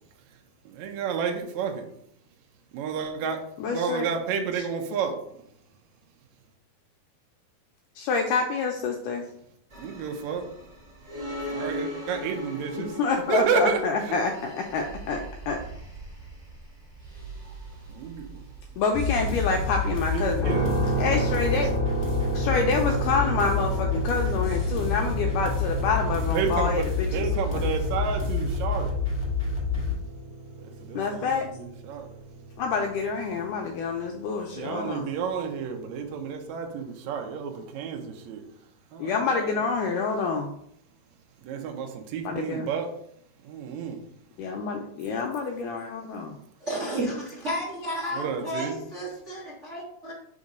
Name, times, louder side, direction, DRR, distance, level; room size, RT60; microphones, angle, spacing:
voice 1, 0.6-1.9 2.7-3.4 3.7-5.2 9.8-10.5 11.5-12.9 13.3-14.2 17.9-18.4 20.1-20.7 26.3-28.9 30.6-32.1 34.6-38.4 38.9-39.6 41.4-42.9 43.4-44.0 48.1-48.8, right 6 dB, 75° right, 3 dB, 1.7 m, -31 dB
voice 2, 3.6-4.1 7.9-9.2 13.0-15.6 18.8-20.4 21.0-21.7 22.3-27.3 27.5-27.7 30.9-31.5 32.6-35.1 39.0-40.6 42.2-42.7 44.4-46.4, left 4 dB, 85° left, 2 dB, 1.8 m, -27 dB
sound 1, 9.7-22.5, equal, 15° right, 2.0 m, -40 dB
sound 2, 18.9-29.9, left 4 dB, 25° left, 0.6 m, -28 dB
sound 3, 20.4-34.4, right 3 dB, 40° left, 1.0 m, -34 dB
voice 3, 46.6-50.1, right 1 dB, 45° right, -5 dB, 0.9 m, -32 dB
5.5 x 3.6 x 5.2 m, 0.70 s
omnidirectional pair, 4.3 m